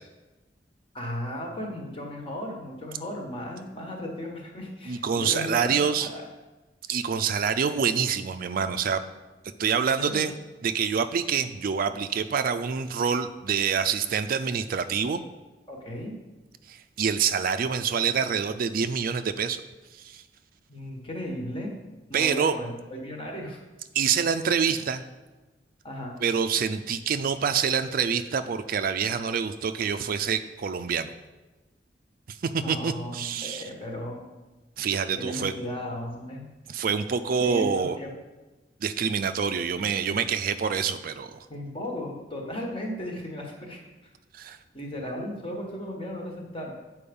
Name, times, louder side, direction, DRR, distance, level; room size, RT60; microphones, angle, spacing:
voice 1, 0.9-5.7 6.0-6.2 10.0-10.3 15.7-16.2 20.7-21.7 22.1-23.6 25.8-26.2 32.5-34.2 35.2-36.5 37.4-38.1 41.5-43.8 44.7-46.7, left 1 dB, 30° left, 0 dB, 1.4 m, -35 dB
voice 2, 4.9-6.1 6.9-9.0 9.6-10.3 10.6-15.2 16.7-19.6 20.0-20.2 22.1-22.6 23.9-25.0 26.2-31.1 32.3-33.6 34.8-35.5 36.7-38.0 38.8-41.4 44.4-44.6, right 6 dB, 55° right, 10 dB, 0.4 m, -26 dB
8.5 x 4.6 x 5.3 m, 1.2 s
head